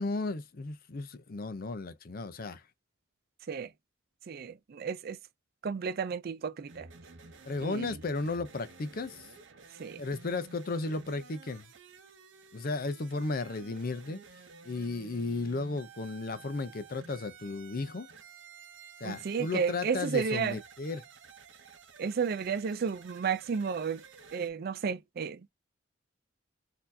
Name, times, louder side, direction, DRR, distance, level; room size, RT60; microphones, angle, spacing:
voice 1, 0.0-2.6 7.5-9.3 10.0-11.6 12.5-14.2 14.6-18.1 19.0-21.0, left 3 dB, 50° left, 0.6 m, -34 dB
voice 2, 4.3-5.2 5.6-6.9 7.6-8.0 9.8-10.0 19.0-20.6 22.0-24.0 24.3-25.4, right 6 dB, 55° right, 0.4 m, -32 dB
sound 1, 6.7-24.5, right 4 dB, 75° right, 0.8 m, -53 dB
4.1 x 2.7 x 2.7 m
head